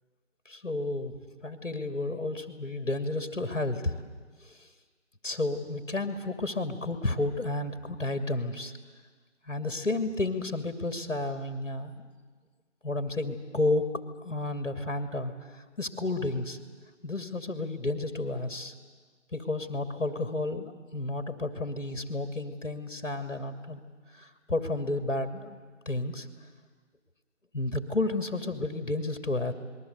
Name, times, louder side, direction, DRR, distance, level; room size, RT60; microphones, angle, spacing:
voice 1, 0.5-1.1 1.4-4.0 4.4-4.7 5.2-8.7 9.5-12.1 12.8-13.9 14.2-15.3 15.8-16.6 17.0-18.7 19.3-23.8 24.1-25.6 25.9-26.3 27.5-29.5, left 2 dB, 70° left, 7 dB, 2.6 m, -31 dB
27.5 x 21.5 x 8.1 m, 1.5 s
figure-of-eight pair, 175°, 38 cm